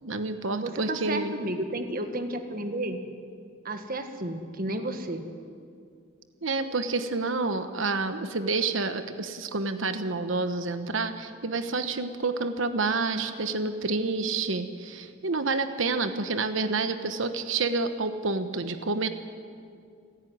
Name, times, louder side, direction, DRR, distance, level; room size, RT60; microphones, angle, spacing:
voice 1, 0.0-1.3 6.4-19.1, right 3 dB, 70° right, 9 dB, 1.1 m, -29 dB
voice 2, 0.6-3.0 3.6-5.2, right 1 dB, 45° right, 7 dB, 1.6 m, -32 dB
29.5 x 11.0 x 9.5 m, 2.3 s
head